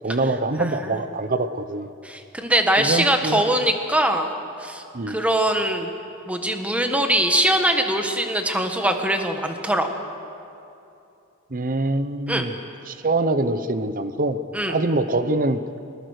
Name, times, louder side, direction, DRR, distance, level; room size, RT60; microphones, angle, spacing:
voice 1, 0.0-1.9 2.8-3.4 4.9-5.2 11.5-12.5 12.9-14.4 14.7-15.6, right 2 dB, 40° right, 11 dB, 0.8 m, -24 dB
voice 2, 0.6-1.0 2.0-4.3 4.6-5.9 6.3-9.9 12.3-12.4 14.5-14.7, right 1 dB, 5° right, 5 dB, 1.5 m, -22 dB
22.5 x 20.5 x 6.6 m, 2.7 s
head